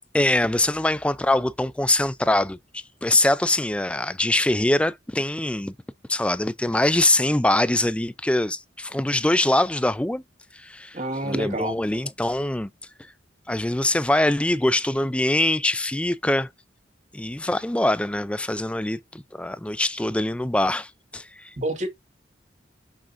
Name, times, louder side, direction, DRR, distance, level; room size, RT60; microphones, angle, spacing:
voice 1, 0.1-2.6 3.0-5.7 6.1-10.2 10.5-11.0 11.2-12.7 13.5-16.5 17.1-21.6, left 1 dB, 5° left, 0.3 m, -23 dB
voice 2, 10.9-11.8 21.6-21.9, right 1 dB, 35° right, 2.0 m, -28 dB
6.7 x 5.9 x 2.5 m
head